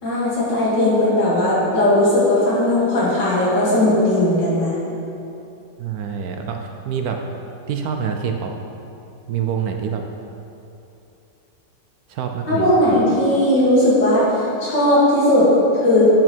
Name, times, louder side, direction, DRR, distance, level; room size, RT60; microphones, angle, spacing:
voice 1, 0.0-4.8 12.5-14.3 14.6-16.2, left 1 dB, 85° left, -8 dB, 3.0 m, -17 dB
voice 2, 5.8-7.2 7.7-8.5 9.3-10.0 12.1-12.7, right 7 dB, 70° right, 4 dB, 1.0 m, -26 dB
8.4 x 6.3 x 4.4 m, 2.8 s
omnidirectional pair, 1.9 m